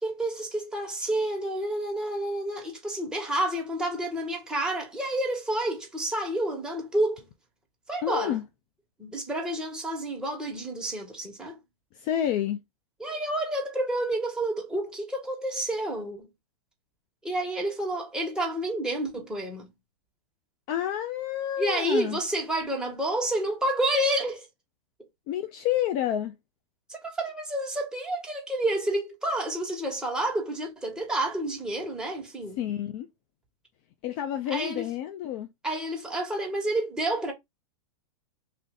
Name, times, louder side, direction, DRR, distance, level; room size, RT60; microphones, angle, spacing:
voice 1, 0.0-7.2 7.9-8.4 9.0-11.6 13.0-16.3 17.2-19.7 21.6-24.5 26.9-32.6 34.5-34.8 35.6-37.3, right 1 dB, 5° right, 1.4 m, -29 dB
voice 2, 8.0-8.4 11.9-12.6 20.7-22.2 25.3-26.4 32.6-33.1 34.0-35.5, left 11 dB, 35° left, 0.4 m, -29 dB
3.2 x 2.6 x 3.8 m
hypercardioid pair, 135°, 18 cm